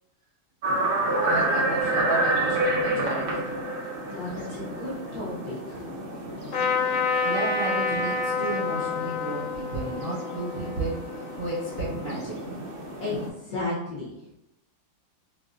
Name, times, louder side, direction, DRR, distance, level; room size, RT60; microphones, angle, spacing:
sound 1, 0.6-13.3, right 2 dB, 85° right, 0.5 m, -30 dB
voice 1, 1.2-3.5 6.2-6.3 7.2-11.1 11.4-12.4, right 2 dB, 40° right, -10 dB, 0.7 m, -32 dB
voice 2, 4.1-5.9 13.0-14.1, left 2 dB, 60° left, -6 dB, 1.0 m, -34 dB
Trumpet, 6.5-12.0, left 4 dB, 80° left, 1.3 m, -29 dB
3.9 x 2.5 x 2.4 m, 0.86 s
omnidirectional pair, 2.1 m